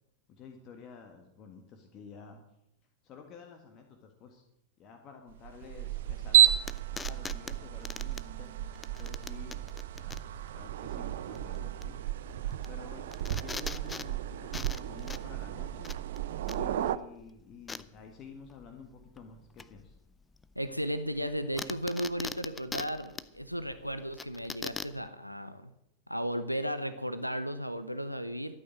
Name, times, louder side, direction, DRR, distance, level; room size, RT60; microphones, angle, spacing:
voice 1, 0.3-2.4 3.0-4.4 4.8-6.6 7.0-8.5 9.0-9.7 9.9-12.0 12.7-15.9 16.5-19.9, left 5 dB, 35° left, 4 dB, 1.7 m, -50 dB
sound 1, 5.4-17.0, right 12 dB, 60° right, 0.6 m, -32 dB
sound 2, 5.7-25.1, left 4 dB, 15° left, 0.6 m, -44 dB
voice 2, 20.6-25.7 26.1-28.5, equal, 90° left, 11 dB, 0.8 m, -35 dB
13.0 x 8.9 x 7.7 m, 0.80 s
figure-of-eight pair, 90°, 0 cm